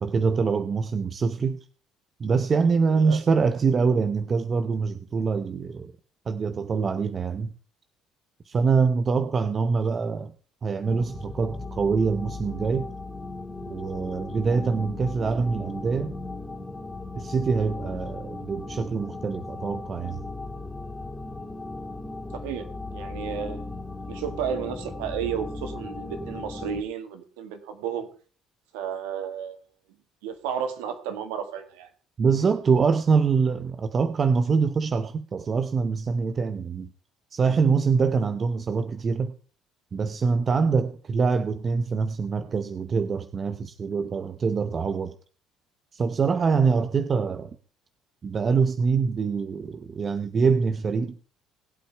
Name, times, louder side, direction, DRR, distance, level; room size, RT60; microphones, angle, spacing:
voice 1, 0.0-1.6 2.2-5.9 6.3-7.5 8.5-10.3 10.6-12.9 13.7-16.2 17.2-20.2 32.2-36.9 37.3-39.3 39.9-45.2 45.9-47.6 48.2-51.2, right 5 dB, 40° right, 0.8 m, -24 dB
sound 1, 10.8-26.8, left 2 dB, 20° left, 2.0 m, -37 dB
voice 2, 22.9-23.6 24.1-28.1 28.7-29.6 30.2-31.9, right 8 dB, 85° right, 1.7 m, -32 dB
19.5 x 8.4 x 3.4 m
supercardioid pair, 70°, 0 cm